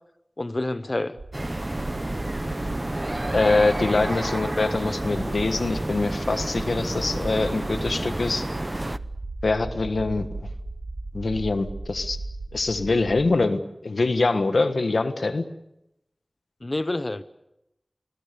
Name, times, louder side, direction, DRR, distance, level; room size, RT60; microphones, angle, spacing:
voice 1, 0.4-1.2 16.6-17.2, left 2 dB, 45° left, 12 dB, 0.9 m, -28 dB
sound 1, 1.2-13.3, right 2 dB, 85° right, 3.2 m, -36 dB
sound 2, 1.3-9.0, right 1 dB, 30° right, 0.8 m, -30 dB
voice 2, 3.3-8.4 9.4-10.5 11.1-12.2 12.5-15.4, left 3 dB, 90° left, 9 dB, 1.5 m, -24 dB
26.5 x 21.5 x 6.9 m, 0.85 s
wide cardioid pair, 55°, 0 cm